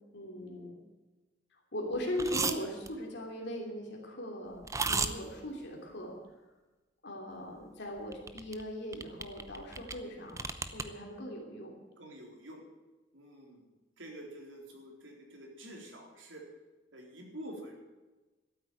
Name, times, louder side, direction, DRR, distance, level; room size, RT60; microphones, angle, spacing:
voice 1, 0.1-0.8 1.7-4.5 4.9-6.2 7.0-11.7, equal, 65° left, 0 dB, 3.0 m, -39 dB
sound 1, 2.2-2.6 2.9-3.0 4.6-5.1 8.1-8.6 8.9-10.0 10.3-10.8, right 4 dB, 15° right, 0.7 m, -33 dB
voice 2, 12.0-12.6 13.1-13.7 14.0-16.4 16.9-17.7, right 1 dB, 75° right, 1 dB, 3.8 m, -48 dB
13.0 x 8.7 x 9.2 m, 1.2 s
head